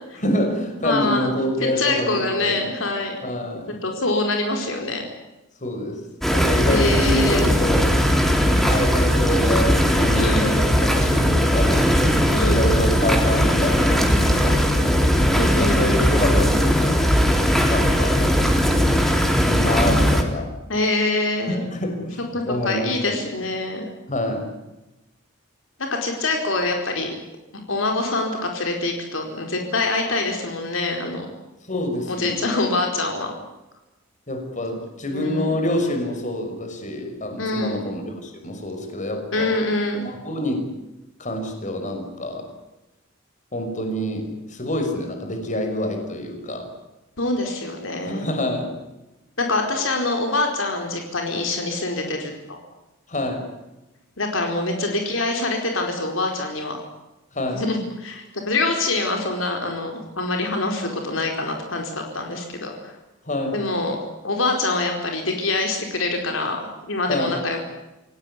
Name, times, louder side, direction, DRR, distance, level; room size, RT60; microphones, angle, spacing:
voice 1, 0.2-2.6 3.2-3.7 5.6-6.0 6.3-8.0 8.7-11.9 12.4-15.1 15.6-17.1 17.7-18.2 19.4-20.5 21.5-23.3 24.1-24.5 31.7-32.5 34.3-39.6 40.0-40.7 41.2-42.5 43.5-46.7 48.0-48.8 53.1-53.5 57.3-57.6 63.2-63.6 67.1-67.4, left 1 dB, 40° left, 5 dB, 5.9 m, -27 dB
voice 2, 0.8-1.3 1.8-3.2 3.7-5.0 6.7-7.5 10.1-10.6 12.3-12.7 15.4-16.0 20.7-21.7 22.3-23.9 25.8-27.1 27.7-31.3 32.1-33.3 35.1-35.5 37.4-37.9 39.3-40.1 47.2-48.3 49.4-52.6 54.2-56.8 57.5-62.9 63.5-64.0 64.2-66.6 66.9-67.6, left 2 dB, 75° left, 3 dB, 4.7 m, -25 dB
sound 1, 6.2-20.2, equal, ahead, 3.6 m, -19 dB
28.0 x 18.0 x 9.9 m, 0.98 s
head